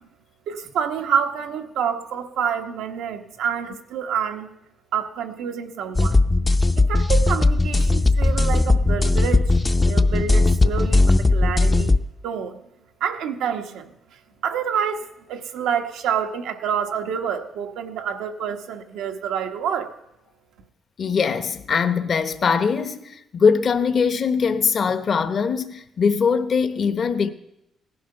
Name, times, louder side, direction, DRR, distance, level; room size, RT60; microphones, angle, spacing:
voice 1, 0.5-4.5 4.9-6.2 6.8-9.6 9.8-12.0 12.2-12.6 13.0-13.9 14.4-19.9, right 7 dB, 90° right, 1.1 m, -27 dB
sound 1, 6.0-12.0, left 2 dB, 20° left, 0.5 m, -18 dB
voice 2, 21.0-27.3, left 6 dB, 50° left, 0.9 m, -21 dB
17.0 x 11.0 x 5.6 m
cardioid pair, 90°, 0 cm